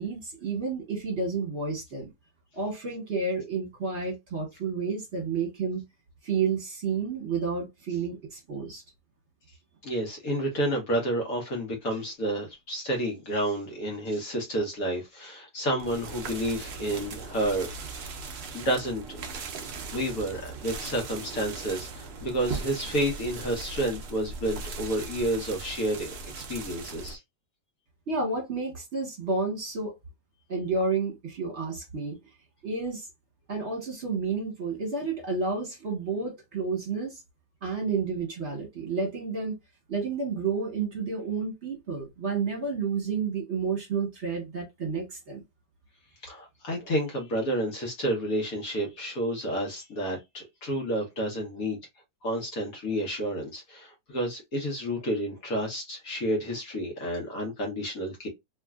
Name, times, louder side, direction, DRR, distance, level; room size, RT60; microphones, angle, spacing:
voice 1, 0.0-2.1 2.5-5.8 6.2-8.8 28.1-29.9 30.5-32.2 32.6-33.1 33.5-37.2 37.6-39.6 39.9-45.4, right 4 dB, 45° right, 1.3 m, -30 dB
voice 2, 9.8-18.2 18.5-19.2 19.9-27.2 46.2-51.8 52.2-58.3, right 1 dB, 60° left, 1.3 m, -30 dB
sound 1, 15.8-27.2, right 4 dB, 90° right, 0.5 m, -39 dB
3.2 x 2.5 x 2.3 m
omnidirectional pair, 1.8 m